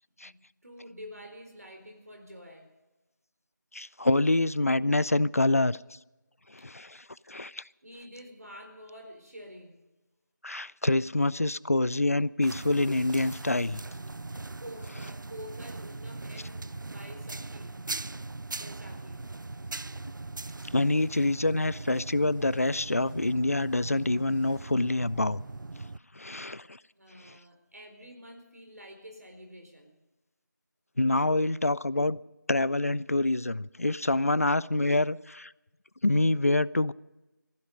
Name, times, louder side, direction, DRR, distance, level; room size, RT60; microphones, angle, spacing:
voice 1, 0.6-2.7 6.6-6.9 7.8-9.9 14.6-17.8 18.6-19.3 27.0-30.0, equal, 55° right, 4.3 m, -48 dB
voice 2, 3.7-5.8 6.5-7.6 10.4-13.8 20.7-25.4 26.2-26.8 27.2-27.4 31.0-32.2 32.5-35.5 36.0-36.9, left 2 dB, 50° left, 0.5 m, -26 dB
sound 1, 12.4-26.0, right 3 dB, 90° right, 0.5 m, -40 dB
18.0 x 15.0 x 5.2 m
figure-of-eight pair, 180°, 10 cm